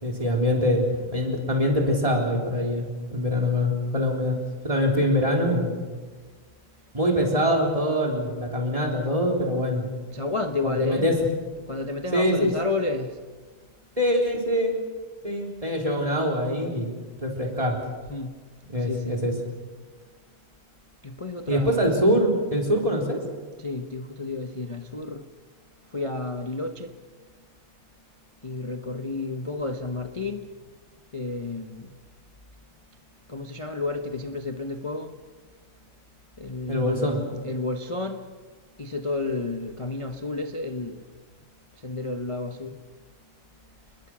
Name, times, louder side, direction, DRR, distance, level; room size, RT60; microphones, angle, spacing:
voice 1, 0.0-0.9 1.1-4.4 4.6-5.9 6.9-9.9 10.6-11.2 12.1-12.5 14.0-14.7 15.2-16.9 17.2-17.8 18.7-19.3 21.5-23.2 36.7-37.2, equal, 15° right, 3.8 m, -24 dB
voice 2, 10.1-11.1 11.7-13.2 18.1-18.3 18.9-19.2 21.0-22.0 23.6-25.3 25.9-26.9 28.4-30.5 31.1-31.9 33.3-35.1 36.4-37.1 37.4-38.3 38.8-41.0 41.8-42.8, left 3 dB, 40° left, 0.4 m, -31 dB
29.5 x 21.0 x 6.3 m
omnidirectional pair, 2.4 m